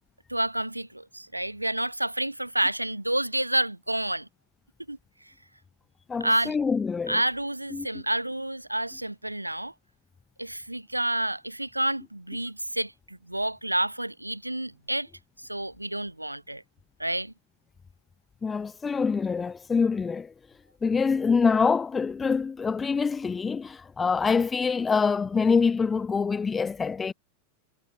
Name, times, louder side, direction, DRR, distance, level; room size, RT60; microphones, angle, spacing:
voice 1, 0.3-4.3 4.9-5.0 6.2-6.6 7.1-9.7 10.4-15.1 15.4-16.6 17.0-17.3, right 1 dB, 85° right, 0.9 m, -29 dB
voice 2, 6.1-7.2 7.7-7.9 18.4-20.3 20.8-27.1, left 5 dB, 15° left, 0.7 m, -25 dB
figure-of-eight pair, 90°, 0 cm